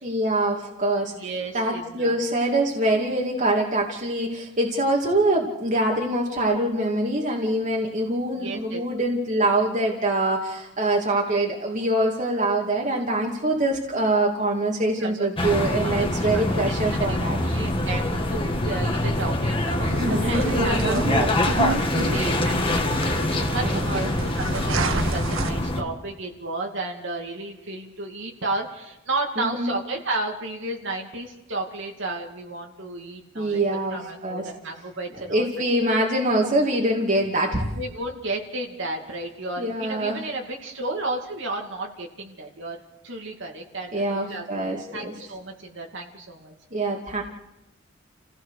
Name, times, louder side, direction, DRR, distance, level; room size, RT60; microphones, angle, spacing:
voice 1, 0.0-1.1 1.5-17.4 20.0-21.4 23.6-24.1 29.4-29.7 33.3-34.5 35.2-37.7 39.6-40.2 43.9-45.1 46.7-47.2, right 1 dB, 40° right, -1 dB, 2.5 m, -24 dB
voice 2, 1.1-2.1 8.3-8.8 15.0-20.8 21.2-33.6 33.9-35.5 35.9-36.0 37.7-42.8 43.0-46.5, right 2 dB, 65° right, 1 dB, 2.5 m, -33 dB
sound 1, 15.4-25.8, left 1 dB, 25° left, 2.0 m, -24 dB
sound 2, 19.8-25.5, right 2 dB, 80° right, 1.6 m, -30 dB
29.0 x 16.5 x 6.6 m, 0.94 s
head